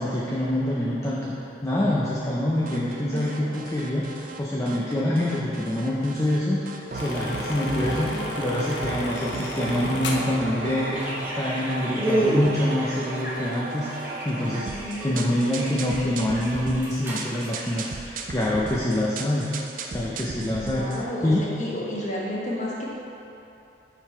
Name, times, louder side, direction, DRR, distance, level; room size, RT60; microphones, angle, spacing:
voice 1, 0.0-1.3 1.6-14.7 15.0-19.5 19.9-20.9 21.2-21.8, left 1 dB, 15° left, -6 dB, 0.5 m, -26 dB
sound 1, 2.7-4.4 4.7-6.4 6.7-21.0, right 3 dB, 45° right, 0.4 m, -36 dB
voice 2, 3.1-3.5 7.8-8.3 14.6-15.3 20.6-22.9, left 1 dB, 40° left, -5 dB, 1.1 m, -32 dB
sound 2, 6.9-11.3, left 2 dB, 75° left, 0.7 m, -35 dB
sound 3, 10.9-18.0, right 1 dB, 10° right, 1.0 m, -31 dB
6.9 x 3.9 x 4.8 m, 2.9 s
head